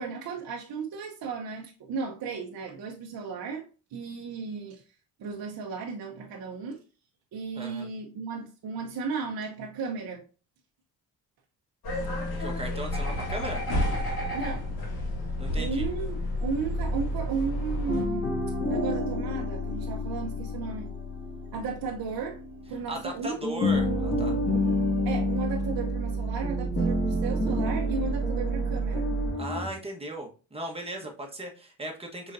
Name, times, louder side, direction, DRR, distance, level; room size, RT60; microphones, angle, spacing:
voice 1, 0.0-3.7 3.9-4.8 5.2-6.8 7.3-10.2 14.3-14.7 15.5-16.2 16.4-18.4 18.7-20.9 21.5-22.4 22.7-23.4 25.0-29.1, right 4 dB, 55° right, 0.8 m, -34 dB
voice 2, 7.5-7.9 12.4-13.6 15.4-15.9 22.9-24.4 29.4-32.3, right 1 dB, 15° right, 1.2 m, -37 dB
sound 1, 11.8-18.0, left 1 dB, 55° left, 2.1 m, -30 dB
sound 2, 17.9-23.1 23.4-29.7, equal, 75° left, 2.3 m, -29 dB
4.9 x 3.7 x 2.5 m
supercardioid pair, 75°, 44 cm